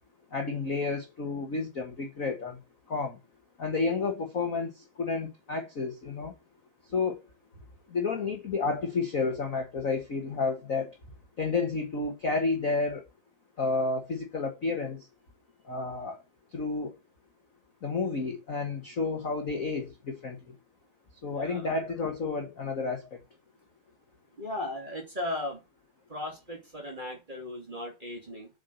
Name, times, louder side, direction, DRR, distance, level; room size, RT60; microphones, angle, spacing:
voice 1, 0.3-2.6 2.9-3.2 3.6-6.3 6.9-7.2 7.9-11.0 11.4-13.0 13.6-15.1 15.6-16.2 16.5-16.9 17.8-20.4 21.2-23.2, left 4 dB, 45° left, 1.0 m, -31 dB
voice 2, 21.3-21.7 24.4-25.6 26.1-28.5, left 1 dB, 15° right, 2.5 m, -37 dB
8.0 x 4.9 x 7.0 m
omnidirectional pair, 3.7 m